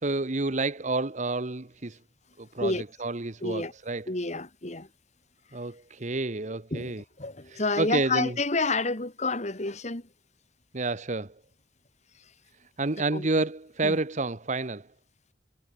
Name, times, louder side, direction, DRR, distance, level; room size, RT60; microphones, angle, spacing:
voice 1, 0.0-2.0 2.4-2.7 3.0-4.1 5.5-7.0 7.5-8.3 10.7-11.3 12.8-14.9, right 2 dB, 40° right, 1.1 m, -29 dB
voice 2, 3.4-3.7 4.1-4.9 6.7-10.1 13.1-13.3 13.8-14.0, left 3 dB, 40° left, 2.5 m, -29 dB
head